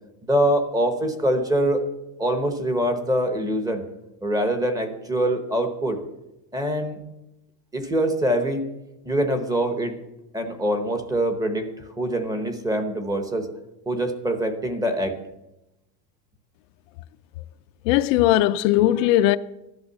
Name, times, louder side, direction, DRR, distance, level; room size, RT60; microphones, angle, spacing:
voice 1, 0.3-1.9 2.2-3.8 4.2-6.0 6.5-7.0 7.7-8.7 9.0-10.0 10.3-13.5 13.9-15.2, right 1 dB, 10° right, 0.8 m, -24 dB
voice 2, 17.9-19.4, left 14 dB, 60° left, 0.5 m, -18 dB
14.0 x 11.5 x 6.6 m
cardioid pair, 175°, 44 cm